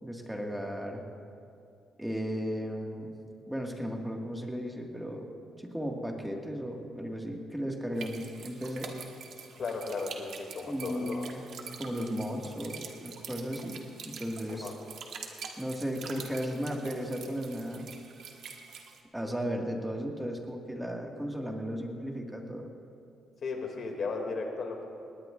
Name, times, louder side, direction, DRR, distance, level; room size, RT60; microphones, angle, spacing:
voice 1, 0.0-1.0 2.0-3.1 3.5-5.3 5.6-8.9 10.6-11.4 11.8-14.7 15.6-17.9 19.1-22.7, equal, 5° right, 1 dB, 1.9 m, -35 dB
sound 1, 8.0-19.0, right 6 dB, 70° right, 1.5 m, -45 dB
voice 2, 9.6-11.3 14.5-14.7 23.4-24.9, left 4 dB, 55° left, 2 dB, 2.6 m, -35 dB
19.5 x 19.0 x 2.6 m, 2.5 s
cardioid pair, 90°, 0 cm